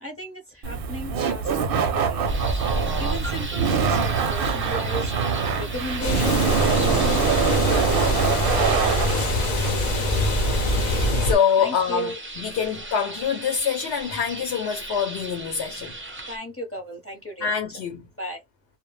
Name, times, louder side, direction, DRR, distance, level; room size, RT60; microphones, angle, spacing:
voice 1, 0.0-2.5 3.0-5.1 5.6-7.2 7.6-9.4 11.6-12.1 16.3-17.5 18.2-18.4, right 1 dB, 15° left, 0.7 m, -35 dB
Laughter, 0.6-11.1, right 6 dB, 60° right, 0.7 m, -24 dB
sound 1, 2.3-16.4, right 1 dB, 15° right, 0.4 m, -36 dB
sound 2, 6.0-11.3, left 2 dB, 45° left, 0.7 m, -24 dB
voice 2, 10.4-16.0 17.4-18.1, left 7 dB, 70° left, 0.9 m, -26 dB
2.1 x 2.1 x 3.0 m
omnidirectional pair, 1.2 m